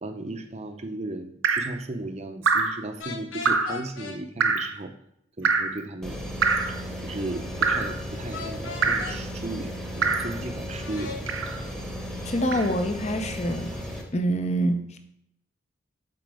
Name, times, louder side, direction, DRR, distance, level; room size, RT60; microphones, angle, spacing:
voice 1, 0.0-4.9 5.4-6.2 7.0-11.2, right 2 dB, 35° right, 7 dB, 0.7 m, -35 dB
Drip, 1.4-1.8 2.4-2.8 3.4-3.8 4.4-4.7 5.4-5.8 6.4-6.8 7.6-8.0 8.8-9.1 10.0-10.3 11.3-11.6 12.5-12.7, right 4 dB, 70° right, 0.7 m, -24 dB
sound 1, 3.0-4.2 8.3-9.2 10.8-11.2, left 5 dB, 70° left, 1.2 m, -37 dB
sound 2, 6.0-14.0, equal, ahead, 1.1 m, -35 dB
voice 2, 12.1-13.7 14.1-15.0, equal, 35° left, 7 dB, 0.7 m, -26 dB
7.7 x 4.1 x 4.8 m, 0.75 s
head